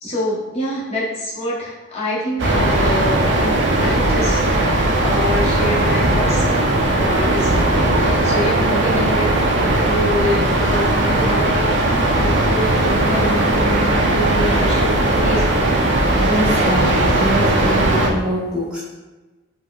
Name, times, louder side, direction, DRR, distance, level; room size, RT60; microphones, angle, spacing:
voice 1, 0.0-6.4 7.0-11.7 12.2-13.8 14.1-15.7, left 1 dB, 35° left, -7 dB, 0.7 m, -26 dB
sound 1, 2.4-18.1, right 1 dB, 60° right, 0.4 m, -17 dB
voice 2, 16.2-18.8, equal, 5° right, -9 dB, 0.6 m, -23 dB
4.1 x 2.0 x 2.2 m, 1.2 s
head